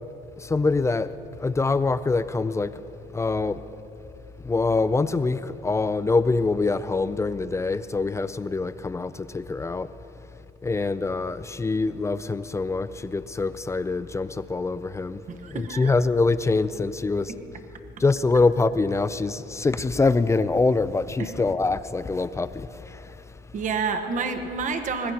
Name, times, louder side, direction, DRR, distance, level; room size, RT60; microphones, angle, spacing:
voice 1, 0.4-2.8 3.1-3.6 4.4-9.9 10.6-17.3 18.0-23.2, left 3 dB, 15° left, 0.4 m, -24 dB
voice 2, 15.3-15.9 21.2-21.3 23.5-25.1, right 5 dB, 50° right, 1.2 m, -29 dB
24.5 x 20.5 x 2.9 m
cardioid pair, 110°, 17 cm